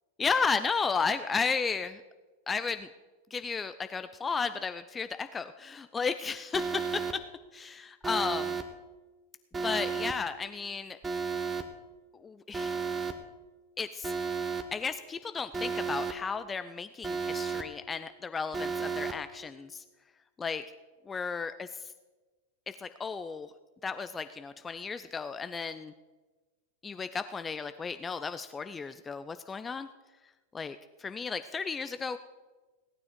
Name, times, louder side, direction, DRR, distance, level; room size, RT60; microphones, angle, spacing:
voice 1, 0.2-2.0 2.5-2.9 3.3-7.0 7.5-8.6 9.6-11.0 12.1-12.8 13.8-14.1 14.7-19.8 20.4-20.6 21.1-21.9 22.7-23.5 23.8-25.9 26.8-29.9 30.5-32.2, left 5 dB, 15° left, 11 dB, 0.5 m, -33 dB
Alarm, 6.5-7.1 8.0-8.6 9.5-10.1 11.0-11.6 12.5-13.1 14.0-14.6 15.5-16.1 17.0-17.6 18.5-19.1, right 5 dB, 15° right, 1.1 m, -33 dB
17.0 x 9.5 x 5.1 m, 1.2 s
figure-of-eight pair, 90°, 0 cm